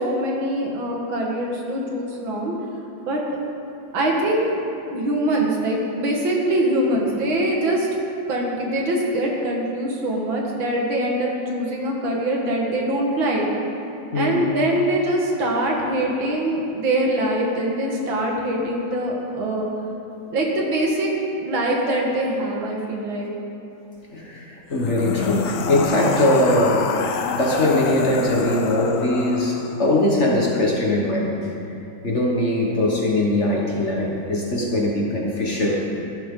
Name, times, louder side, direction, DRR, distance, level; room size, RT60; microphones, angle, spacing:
voice 1, 0.0-2.5 3.1-3.2 3.9-4.4 4.9-7.9 8.3-13.5 14.1-19.7 20.3-21.1 21.4-23.3, right 1 dB, 75° right, -1 dB, 2.4 m, -23 dB
voice 2, 14.1-14.5 24.1-26.9 27.3-31.5 32.0-35.8, left 1 dB, 40° left, -2 dB, 1.4 m, -21 dB
sound 1, 24.7-29.9, left 6 dB, 90° left, 0.7 m, -28 dB
14.0 x 11.5 x 3.8 m, 2.9 s
omnidirectional pair, 2.1 m